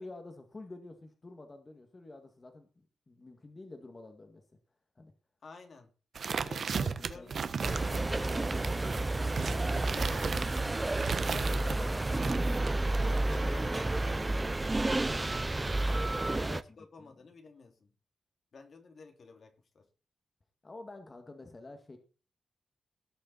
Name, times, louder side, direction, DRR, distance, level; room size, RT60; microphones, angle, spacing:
voice 1, 0.0-2.7 3.1-4.4 5.0-5.1 6.5-7.5 9.4-10.1 16.1-16.3 17.0-17.1 20.6-22.0, left 2 dB, 30° left, 2.0 m, -48 dB
voice 2, 5.4-5.9 6.4-9.3 9.9-10.3 11.3-14.6 16.2-17.9 18.5-19.9, left 4 dB, 55° left, 2.7 m, -51 dB
sound 1, 6.1-11.8 12.2-13.4, right 6 dB, 60° right, 1.2 m, -36 dB
sound 2, 7.6-16.6, right 2 dB, 20° right, 0.7 m, -31 dB
18.0 x 6.8 x 4.2 m
cardioid pair, 90°, 0 cm